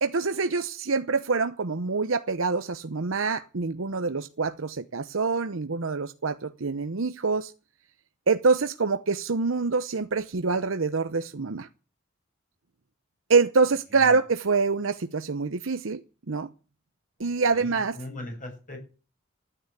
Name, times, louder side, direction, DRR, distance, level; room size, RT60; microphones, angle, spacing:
voice 1, 0.0-7.5 8.3-11.7 13.3-16.0 16.3-16.5 17.2-18.0, right 4 dB, 85° right, 0.8 m, -25 dB
voice 2, 17.2-18.8, left 1 dB, 40° left, 7.6 m, -40 dB
14.5 x 10.0 x 8.3 m
head